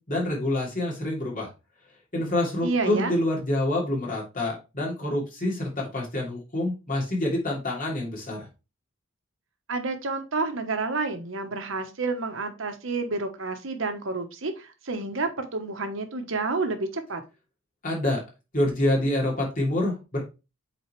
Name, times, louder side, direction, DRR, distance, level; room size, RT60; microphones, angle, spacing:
voice 1, 0.1-1.5 2.1-8.4 17.8-18.2 18.5-20.2, left 1 dB, 40° left, -2 dB, 3.0 m, -27 dB
voice 2, 2.6-3.1 9.7-17.2, right 3 dB, 65° right, 6 dB, 1.2 m, -29 dB
8.2 x 3.9 x 3.2 m, 0.28 s
head